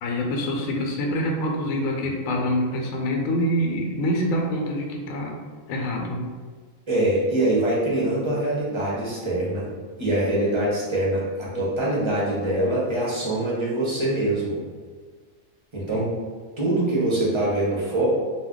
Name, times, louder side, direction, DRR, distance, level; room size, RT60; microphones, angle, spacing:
voice 1, 0.0-5.4 5.7-6.3 15.9-16.1, equal, 75° left, 1 dB, 1.0 m, -26 dB
voice 2, 6.9-9.7 10.0-14.6 15.7-16.1 16.6-18.0, right 1 dB, 30° right, -7 dB, 0.6 m, -24 dB
2.5 x 2.2 x 3.6 m, 1.5 s
omnidirectional pair, 1.5 m